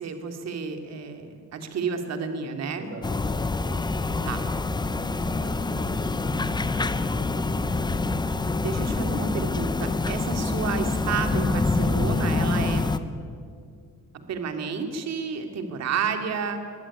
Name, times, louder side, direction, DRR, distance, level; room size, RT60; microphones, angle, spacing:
voice 1, 0.0-2.9 4.2-4.4 8.6-12.8 14.1-16.6, right 5 dB, 55° right, 6 dB, 2.6 m, -31 dB
voice 2, 2.7-4.5 5.1-7.7, right 1 dB, 40° right, 2 dB, 6.4 m, -44 dB
sound 1, 3.0-13.0, left 3 dB, 15° left, 0.8 m, -26 dB
22.5 x 16.0 x 9.9 m, 2.2 s
cardioid pair, 145°, 31 cm